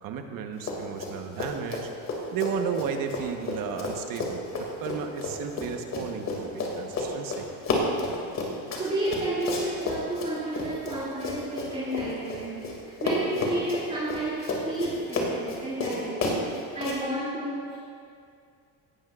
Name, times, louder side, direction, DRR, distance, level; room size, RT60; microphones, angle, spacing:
voice 1, 0.0-7.5, right 7 dB, 60° right, 5 dB, 1.2 m, -34 dB
Run, 0.6-1.1 1.4-12.8 13.0-17.0, left 3 dB, 45° left, 2.4 m, -31 dB
voice 2, 8.5-17.8, right 1 dB, 20° right, -10 dB, 2.9 m, -31 dB
17.5 x 13.0 x 2.5 m, 2.3 s
cardioid pair, 135°, 37 cm